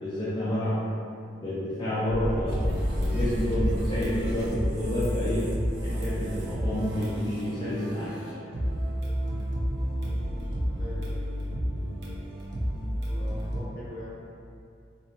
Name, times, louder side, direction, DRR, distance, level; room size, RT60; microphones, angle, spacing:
voice 1, 0.0-0.8 1.4-5.5 5.8-8.2, equal, 25° left, -11 dB, 0.3 m, -29 dB
sound 1, 2.1-7.3, equal, 80° right, 1.1 m, -33 dB
sound 2, 2.5-13.6, equal, 60° right, 0.5 m, -31 dB
voice 2, 10.1-11.2 13.1-14.1, left 2 dB, 50° left, -7 dB, 0.7 m, -43 dB
2.6 x 2.0 x 2.7 m, 2.4 s
head